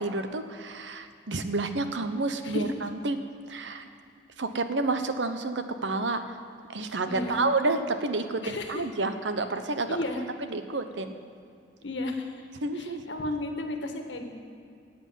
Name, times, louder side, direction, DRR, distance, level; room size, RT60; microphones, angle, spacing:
voice 1, 0.0-3.2 3.5-3.9 4.4-6.4 6.7-10.0 10.5-11.2 12.6-13.0, right 3 dB, 85° right, 9 dB, 1.0 m, -29 dB
voice 2, 7.1-7.4 8.4-8.7 9.9-10.2 11.8-12.3 12.7-14.3, left 2 dB, 90° left, 4 dB, 1.6 m, -33 dB
14.0 x 8.0 x 9.2 m, 2.4 s
head